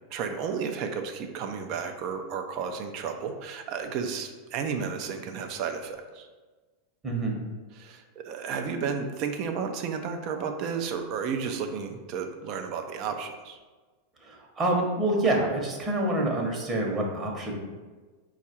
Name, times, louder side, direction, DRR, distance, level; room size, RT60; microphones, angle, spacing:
voice 1, 0.1-6.3 7.7-13.6, right 6 dB, 50° right, 5 dB, 0.5 m, -32 dB
voice 2, 7.0-7.4 14.2-17.6, right 2 dB, 25° right, 0 dB, 1.0 m, -27 dB
4.5 x 2.4 x 4.2 m, 1.3 s
hypercardioid pair, 105°, 0 cm